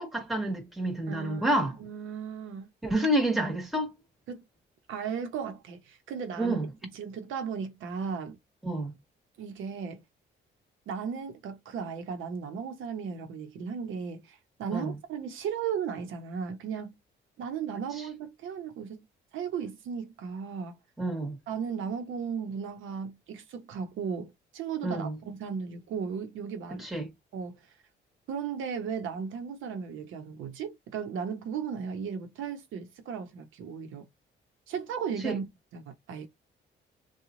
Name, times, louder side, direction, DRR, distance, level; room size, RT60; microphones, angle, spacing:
voice 1, 0.0-1.8 2.8-3.9 6.4-6.7 8.6-8.9 14.7-14.9 21.0-21.4 24.8-25.2 26.8-27.1 35.2-35.4, right 1 dB, ahead, 1.3 m, -29 dB
voice 2, 1.1-2.7 4.3-4.4 4.9-8.4 9.4-10.0 10.9-17.0 17.4-19.1 19.3-20.8 21.5-26.9 27.3-27.6 28.3-34.1 34.7-35.5 35.7-36.3, right 6 dB, 80° right, 0.9 m, -36 dB
3.0 x 2.4 x 3.7 m
cardioid pair, 90°, 20 cm